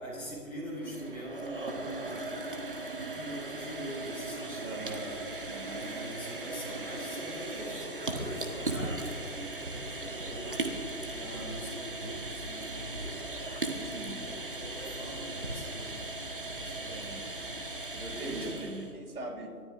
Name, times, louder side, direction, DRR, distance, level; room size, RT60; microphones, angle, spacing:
voice 1, 0.0-2.2 3.1-5.2 5.7-10.6 11.1-13.2 13.8-16.1 16.6-17.0 18.1-18.6, equal, 5° left, -14 dB, 3.7 m, -42 dB
sound 1, 0.7-18.9, right 2 dB, 35° right, 1.2 m, -38 dB
voice 2, 4.6-5.1 5.5-5.9 13.8-14.3 16.9-17.4 17.9-19.6, right 2 dB, 65° right, 5 dB, 2.4 m, -42 dB
29.0 x 13.5 x 2.5 m, 2.3 s
figure-of-eight pair, 170°, 48 cm